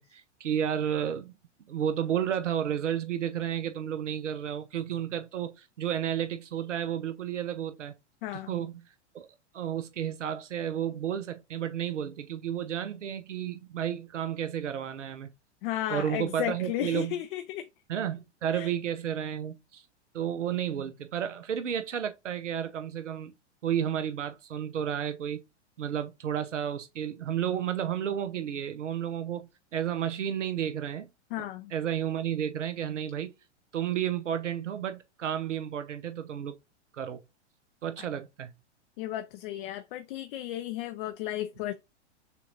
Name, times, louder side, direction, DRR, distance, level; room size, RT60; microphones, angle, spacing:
voice 1, 0.1-1.3 1.7-7.9 8.3-8.8 9.1-9.3 9.5-15.3 15.9-17.1 17.9-19.8 20.1-23.3 23.6-25.4 25.8-31.1 31.4-33.3 33.7-36.5 36.9-37.2 37.8-38.5, right 9 dB, 85° right, 0.8 m, -32 dB
voice 2, 8.2-8.6 15.6-17.7 18.5-18.7 31.3-31.7 38.0-38.1 39.0-41.7, left 13 dB, 50° left, 0.6 m, -34 dB
6.7 x 2.5 x 3.0 m
hypercardioid pair, 105°, 35 cm